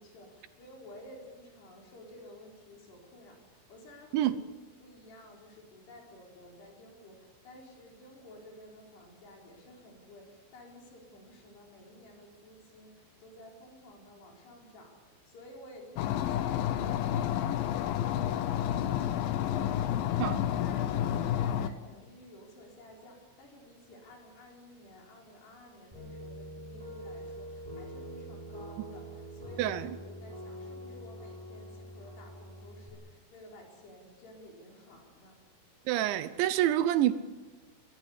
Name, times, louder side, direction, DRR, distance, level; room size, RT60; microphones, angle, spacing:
voice 1, 0.0-4.4 4.8-35.4, left 1 dB, 60° left, 6.8 m, -53 dB
sound 1, 16.0-21.7, left 11 dB, 80° left, 2.1 m, -30 dB
sound 2, 25.9-32.9, equal, 5° right, 5.5 m, -44 dB
voice 2, 29.6-29.9 35.9-37.1, right 12 dB, 80° right, 3.1 m, -27 dB
23.5 x 19.0 x 8.3 m
omnidirectional pair, 5.5 m